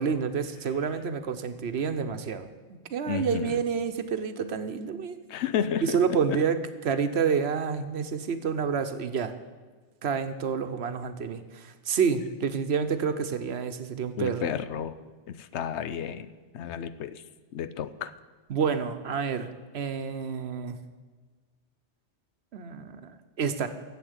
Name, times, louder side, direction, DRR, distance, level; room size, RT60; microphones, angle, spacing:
voice 1, 0.0-5.2 5.8-9.3 10.0-14.5 18.5-20.8 22.5-23.7, right 6 dB, 70° right, 9 dB, 1.1 m, -29 dB
voice 2, 3.1-3.6 5.3-6.0 6.3-6.4 14.2-15.0 15.3-16.3 16.5-17.2 17.5-18.1, left 8 dB, 90° left, 14 dB, 0.9 m, -31 dB
12.5 x 7.7 x 8.0 m, 1.4 s
omnidirectional pair, 1.1 m